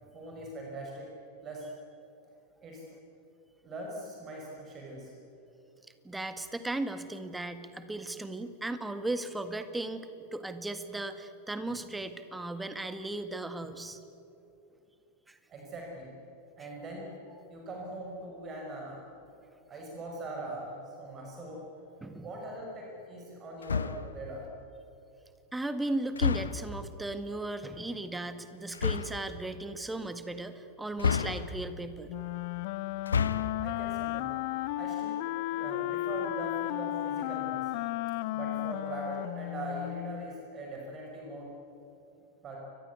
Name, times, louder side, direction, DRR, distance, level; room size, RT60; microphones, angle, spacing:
voice 1, 0.1-1.1 1.4-1.7 2.6-2.8 3.6-5.1 15.5-16.1 16.6-17.1 17.5-19.0 19.7-21.7 22.2-24.5 33.6-34.3 34.8-35.2 35.5-37.7 38.3-41.5 42.4-42.6, right 2 dB, 25° right, -1 dB, 5.8 m, -41 dB
voice 2, 6.0-14.0 15.3-15.4 22.0-22.3 25.5-32.1, right 2 dB, 5° right, 10 dB, 1.8 m, -36 dB
sound 1, 23.6-24.2 26.1-26.8 28.7-29.2 31.0-31.8 32.9-33.6, left 6 dB, 70° left, 1.0 m, -30 dB
Wind instrument woodwind instrument, 32.1-40.3, left 16 dB, 50° left, 0.7 m, -34 dB
29.0 x 23.5 x 8.3 m, 2.8 s
figure-of-eight pair, 90°, 0 cm